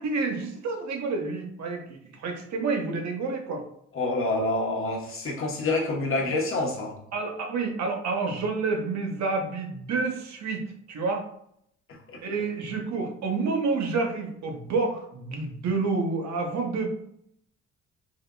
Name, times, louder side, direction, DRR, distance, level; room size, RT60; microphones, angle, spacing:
voice 1, 0.0-3.6 7.1-11.3 12.2-17.0, right 4 dB, 65° right, 3 dB, 0.9 m, -29 dB
voice 2, 3.9-7.0 11.9-12.2, left 2 dB, 45° left, -1 dB, 1.0 m, -27 dB
4.8 x 2.5 x 2.2 m, 0.69 s
cardioid pair, 90°, 30 cm